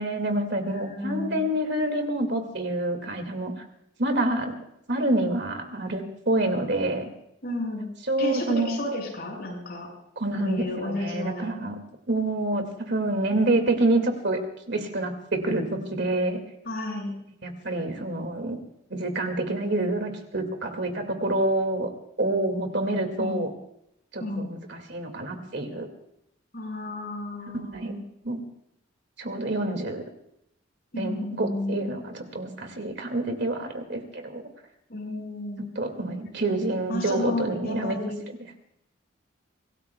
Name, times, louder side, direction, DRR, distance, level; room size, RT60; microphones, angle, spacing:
voice 1, 0.0-3.5 4.0-4.5 4.9-7.1 8.1-8.8 10.2-11.8 12.1-14.4 14.7-16.4 17.4-18.6 18.9-21.9 22.2-23.5 24.1-25.9 27.5-27.9 28.2-28.4 29.2-30.0 31.0-34.4 35.8-38.0, right 2 dB, 55° right, 5 dB, 2.3 m, -27 dB
voice 2, 0.7-1.4 7.4-7.9 8.2-9.9 10.4-11.5 16.6-17.1 23.2-23.5 24.2-24.5 26.5-28.0 30.9-31.9 34.9-35.7 36.9-38.2, left 1 dB, 50° left, -1 dB, 6.4 m, -32 dB
25.5 x 18.0 x 2.3 m, 0.78 s
head